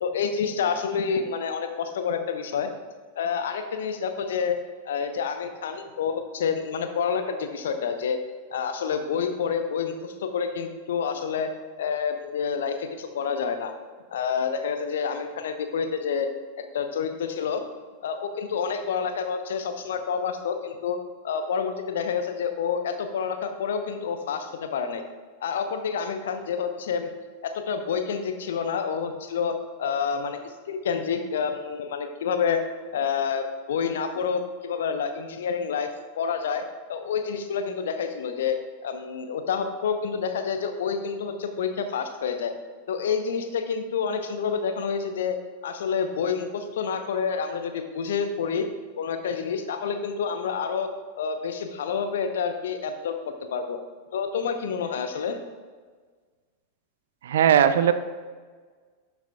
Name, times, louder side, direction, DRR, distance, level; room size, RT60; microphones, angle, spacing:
voice 1, 0.0-2.7 3.2-4.6 4.9-8.2 8.5-11.5 11.8-13.7 14.1-16.3 16.7-17.6 18.0-21.0 21.2-25.0 25.4-27.1 27.4-32.6 32.9-42.5 42.9-45.4 45.6-48.7 49.0-50.9 51.2-53.1 53.5-53.8 54.1-55.4, left 6 dB, 60° left, 7 dB, 0.8 m, -28 dB
voice 2, 57.2-57.9, right 9 dB, 60° right, 12 dB, 0.4 m, -18 dB
12.0 x 6.9 x 2.3 m, 1.5 s
figure-of-eight pair, 90°, 0 cm